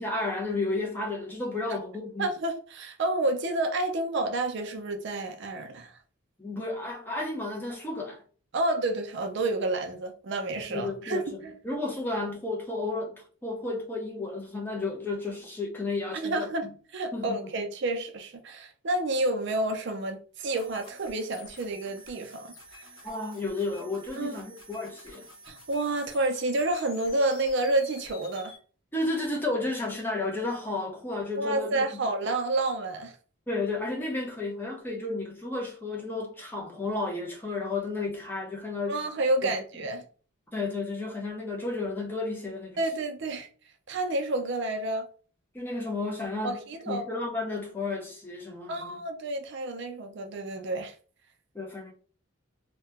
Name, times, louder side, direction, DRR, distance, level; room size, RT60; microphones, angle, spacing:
voice 1, 0.0-2.3 6.4-8.2 10.7-16.7 17.1-17.4 23.0-25.3 28.9-32.0 33.5-39.0 39.4-39.5 40.5-42.8 45.5-49.0 51.5-51.9, left 2 dB, 10° left, 0.6 m, -32 dB
voice 2, 2.2-6.0 8.5-11.5 16.2-16.7 16.9-22.5 24.2-24.4 25.5-28.5 31.4-33.2 38.9-40.0 42.8-43.5 43.9-45.1 46.4-47.1 48.7-50.9, right 2 dB, 55° right, 0.5 m, -29 dB
sound 1, 20.6-28.6, left 1 dB, 75° left, 1.0 m, -49 dB
2.8 x 2.2 x 3.3 m
head